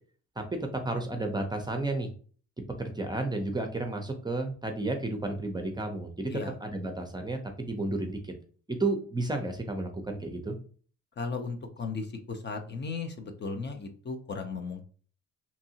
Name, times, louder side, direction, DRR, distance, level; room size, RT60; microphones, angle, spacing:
voice 1, 0.4-2.1 2.7-8.3 8.7-10.6, right 2 dB, 15° right, 4 dB, 0.5 m, -32 dB
voice 2, 11.2-14.8, left 4 dB, 35° left, 5 dB, 0.5 m, -36 dB
2.8 x 2.6 x 2.7 m, 0.42 s
cardioid pair, 90°, 30 cm